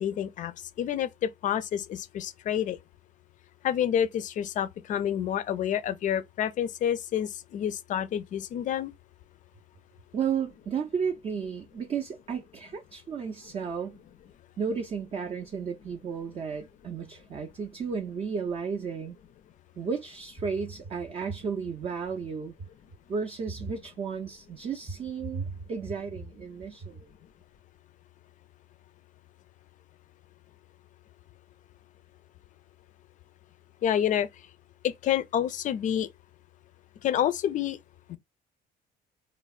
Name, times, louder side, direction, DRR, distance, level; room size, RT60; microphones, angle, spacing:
voice 1, 0.0-2.8 3.6-8.9 33.8-34.3 34.8-36.1 37.0-37.8 38.1-38.2, left 10 dB, 50° left, 0.4 m, -28 dB
voice 2, 10.1-14.0 14.6-19.2 19.8-22.5 23.1-27.1, right 6 dB, 35° right, 0.4 m, -33 dB
3.2 x 2.1 x 2.3 m
cardioid pair, 110°, 17 cm